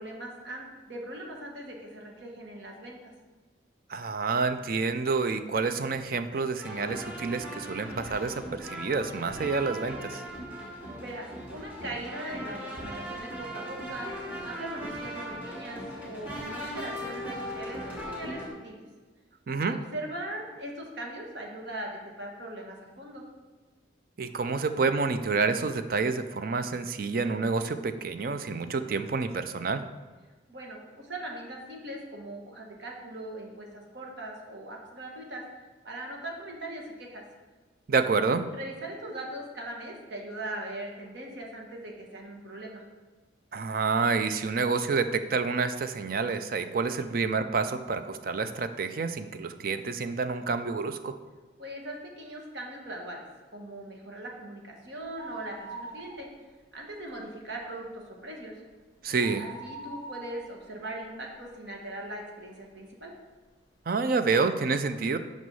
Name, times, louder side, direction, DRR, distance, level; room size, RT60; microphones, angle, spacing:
voice 1, 0.0-3.1 10.9-18.8 19.7-23.2 30.5-35.4 35.8-37.2 38.4-42.8 51.6-53.2 53.5-56.3 56.7-58.6 59.4-63.1, right 1 dB, 65° right, 0 dB, 1.5 m, -40 dB
voice 2, 3.9-10.2 19.5-19.8 24.2-29.8 37.9-38.5 43.5-51.2 59.0-59.5 63.9-65.2, right 4 dB, 50° right, 10 dB, 0.4 m, -28 dB
sound 1, 6.6-18.5, equal, 10° right, 1.2 m, -39 dB
sound 2, 55.0-56.7 57.0-57.1 57.6-62.0 62.5-62.6 63.4-63.5 63.7-63.8, right 2 dB, 20° left, 0.7 m, -44 dB
6.1 x 5.3 x 5.5 m, 1.3 s
head